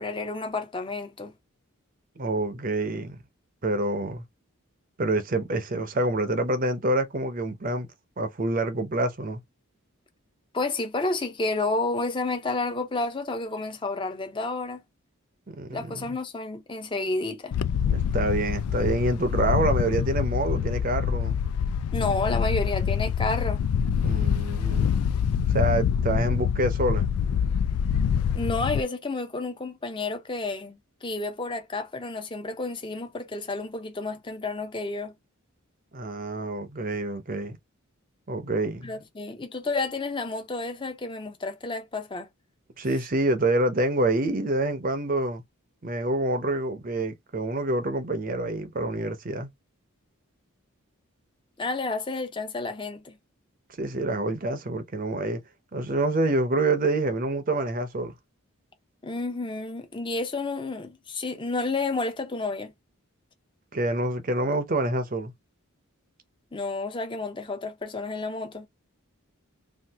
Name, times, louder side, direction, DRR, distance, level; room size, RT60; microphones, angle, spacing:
voice 1, 0.0-1.3 10.5-14.8 15.7-17.5 21.9-23.6 28.3-35.1 38.8-42.3 51.6-53.2 59.0-62.7 66.5-68.7, left 3 dB, 20° left, 0.6 m, -30 dB
voice 2, 2.2-3.2 3.6-4.2 5.0-7.9 8.2-9.4 15.5-16.2 17.9-21.4 24.0-24.9 25.5-27.1 35.9-37.6 38.3-38.9 42.8-45.4 45.8-49.5 53.8-55.4 55.7-58.2 63.7-65.3, right 2 dB, 40° right, 0.6 m, -27 dB
Wind, 17.5-28.8, left 7 dB, 80° left, 0.3 m, -25 dB
2.8 x 2.5 x 3.4 m
head